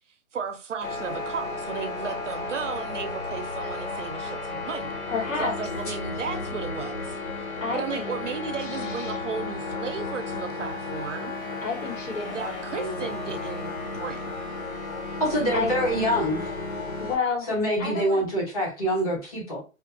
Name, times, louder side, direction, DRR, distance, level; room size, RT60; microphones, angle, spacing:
voice 1, 0.3-4.9 5.4-7.2 7.7-11.3 12.2-14.4, right 6 dB, 60° right, 0.6 m, -34 dB
sound 1, 0.8-17.2, left 3 dB, 85° left, 1.3 m, -33 dB
voice 2, 5.1-5.5 7.6-8.2 8.6-9.2 11.6-13.1 15.5-15.7 17.0-17.5 17.8-18.2, left 4 dB, 65° left, 1.6 m, -30 dB
voice 3, 15.2-16.5 17.5-19.6, equal, 25° left, 1.3 m, -25 dB
2.6 x 2.4 x 2.5 m
hypercardioid pair, 170°, 41 cm